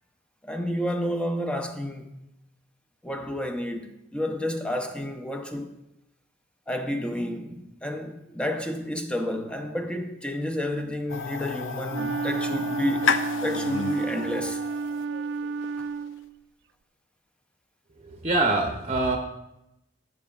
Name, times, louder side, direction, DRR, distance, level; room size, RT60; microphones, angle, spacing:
voice 1, 0.4-2.2 3.0-5.7 6.7-13.2 13.4-14.6, left 1 dB, 5° left, 0.6 m, -30 dB
sound 1, 11.1-16.1, left 6 dB, 75° left, 0.5 m, -32 dB
Wind instrument woodwind instrument, 11.9-16.4, right 4 dB, 60° right, 0.3 m, -31 dB
voice 2, 18.0-19.2, right 2 dB, 35° right, 0.7 m, -24 dB
12.0 x 8.3 x 2.4 m
head